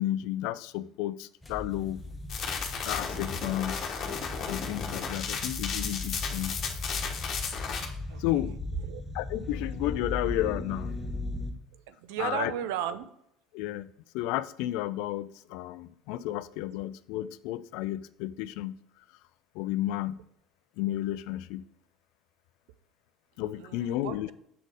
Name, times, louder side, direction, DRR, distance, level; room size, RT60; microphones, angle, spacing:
voice 1, 0.0-2.0 2.8-3.9 4.5-6.6 8.2-8.6 9.1-11.0 12.2-12.5 13.5-13.9 14.1-18.8 19.5-20.2 20.8-21.7 23.4-24.3, left 14 dB, 70° left, 0.3 m, -32 dB
sound 1, 1.4-11.5, left 2 dB, 15° left, 1.3 m, -37 dB
sound 2, 2.3-7.8, left 6 dB, 50° left, 1.2 m, -34 dB
voice 2, 11.7-13.1 23.6-24.3, right 10 dB, 75° right, 0.5 m, -35 dB
6.6 x 4.0 x 4.8 m
hypercardioid pair, 70°, 0 cm